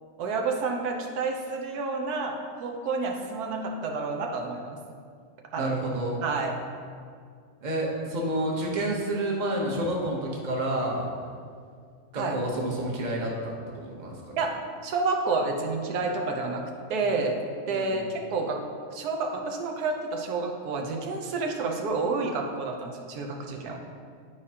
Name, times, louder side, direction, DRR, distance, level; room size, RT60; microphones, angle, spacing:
voice 1, 0.2-4.8 5.5-5.8 6.2-6.6 12.1-12.4 14.4-16.6 16.9-17.4 17.7-18.6 18.9-23.8, right 3 dB, 90° right, 2 dB, 1.3 m, -29 dB
voice 2, 5.6-6.2 7.6-11.1 12.1-14.4 17.7-18.0, right 1 dB, 35° right, -2 dB, 0.9 m, -29 dB
9.9 x 4.8 x 2.8 m, 2.2 s
omnidirectional pair, 1.6 m